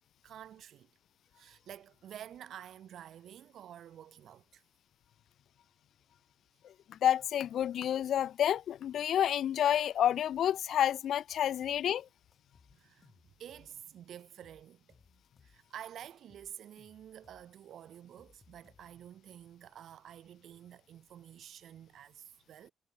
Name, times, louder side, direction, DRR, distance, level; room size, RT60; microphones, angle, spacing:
voice 1, 0.2-0.9 1.3-4.6 11.5-11.6 12.7-22.7, right 10 dB, 60° right, 2.1 m, -50 dB
voice 2, 6.9-12.0, left 10 dB, 60° left, 0.4 m, -29 dB
sound 1, 11.6-12.0 12.3-13.9 14.2-15.8 16.1-19.2, left 5 dB, 30° left, 7.9 m, -65 dB
cardioid pair, 160°, 0 cm